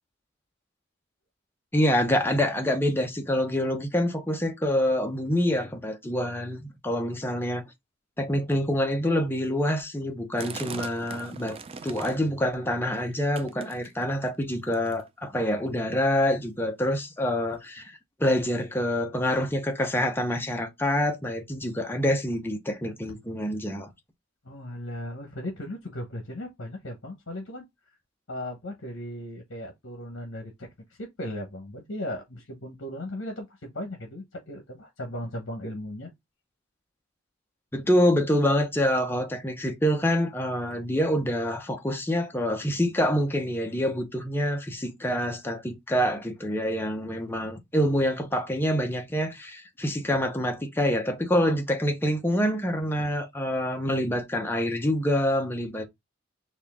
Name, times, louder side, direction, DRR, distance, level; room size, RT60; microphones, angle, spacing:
voice 1, 1.7-7.6 8.2-11.6 11.8-23.9 37.7-55.9, equal, 10° left, 0.8 m, -26 dB
sound 1, 10.4-12.3 12.7-13.1 13.4-14.2 14.7-15.1 15.8-15.9 16.1-16.3 16.9-17.0 17.7-17.8, right 5 dB, 30° right, 0.3 m, -40 dB
voice 2, 24.4-27.6 28.3-36.1, left 1 dB, 70° left, 1.1 m, -37 dB
4.3 x 2.5 x 3.5 m
head